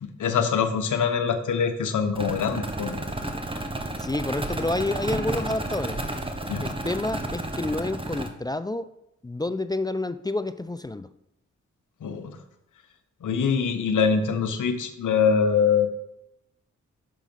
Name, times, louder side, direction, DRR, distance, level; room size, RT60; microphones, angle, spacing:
voice 1, 0.0-3.0 6.5-6.6 12.0-12.4 13.2-15.9, left 6 dB, 75° left, 7 dB, 1.0 m, -24 dB
sound 1, 2.1-8.3, right 1 dB, 15° right, 1.1 m, -32 dB
voice 2, 4.0-6.0 6.6-8.9 9.2-11.1, left 2 dB, 15° left, 12 dB, 0.4 m, -29 dB
5.9 x 5.9 x 5.4 m, 0.84 s
cardioid pair, 50°, 31 cm